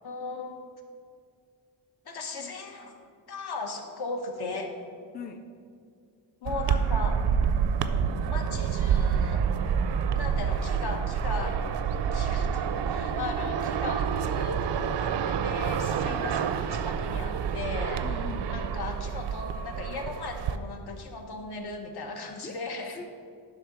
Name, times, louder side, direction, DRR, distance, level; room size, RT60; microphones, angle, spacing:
voice 1, 0.0-0.6 2.0-4.8 6.4-7.2 8.3-9.5 10.2-11.6 12.1-18.0 18.5-23.0, left 3 dB, 65° left, 3 dB, 1.0 m, -37 dB
voice 2, 5.1-5.4 16.1-16.3 18.0-18.7 22.4-22.6 22.9-23.1, left 5 dB, 25° left, 7 dB, 0.3 m, -40 dB
sound 1, 6.5-20.6, right 7 dB, 80° right, 0.5 m, -28 dB
10.0 x 3.9 x 5.9 m, 2.2 s
wide cardioid pair, 130°, 41 cm